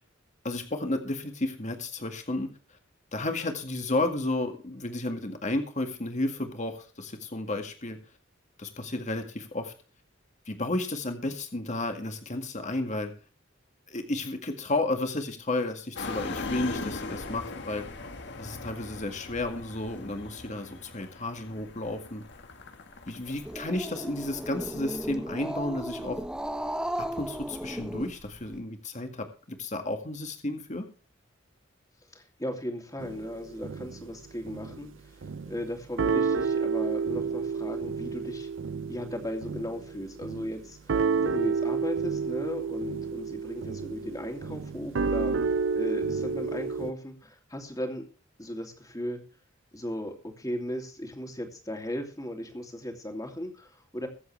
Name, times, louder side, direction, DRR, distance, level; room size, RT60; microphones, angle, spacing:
voice 1, 0.4-2.5 3.1-8.0 8.6-9.7 10.5-13.1 13.9-17.8 18.4-22.2 23.1-26.2 27.0-30.9, left 2 dB, 40° left, 5 dB, 1.9 m, -32 dB
sound 1, 16.0-25.2, left 3 dB, 65° left, 1.7 m, -40 dB
Growling, 23.2-28.6, right 1 dB, 5° right, 0.8 m, -35 dB
voice 2, 32.1-38.5 38.9-48.1 48.4-49.2 49.7-54.1, equal, 20° left, 4 dB, 2.8 m, -37 dB
sound 2, 33.0-34.1 34.5-34.8 35.2-35.7 36.0-46.9, right 5 dB, 70° right, 0.5 m, -30 dB
22.5 x 7.9 x 3.3 m, 0.37 s
head